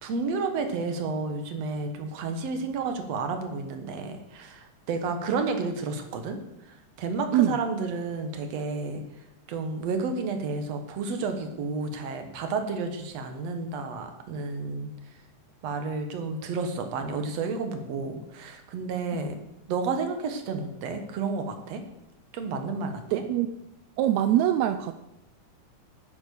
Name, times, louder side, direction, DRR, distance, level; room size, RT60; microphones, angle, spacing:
voice 1, 0.0-6.4 7.0-9.0 9.5-14.9 15.6-19.4 19.7-21.8 22.3-23.2, right 4 dB, 60° right, 6 dB, 2.3 m, -31 dB
voice 2, 23.1-23.6 24.0-24.9, right 11 dB, 80° right, 10 dB, 1.7 m, -23 dB
9.7 x 9.4 x 6.9 m, 0.85 s
omnidirectional pair, 3.6 m